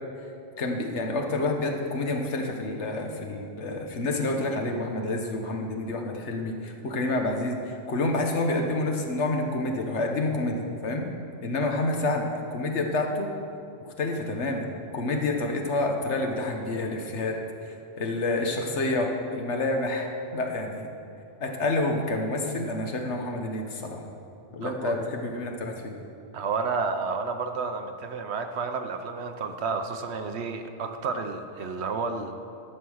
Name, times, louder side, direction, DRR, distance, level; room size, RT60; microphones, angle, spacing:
voice 1, 0.6-11.1 11.4-13.3 14.0-14.7 14.9-17.4 17.6-20.9 21.4-24.0 24.5-25.9, left 2 dB, 70° left, 2 dB, 1.4 m, -28 dB
voice 2, 24.6-24.9 26.3-32.3, right 4 dB, 65° right, 7 dB, 1.0 m, -31 dB
12.0 x 7.0 x 6.3 m, 2.7 s
omnidirectional pair, 1.2 m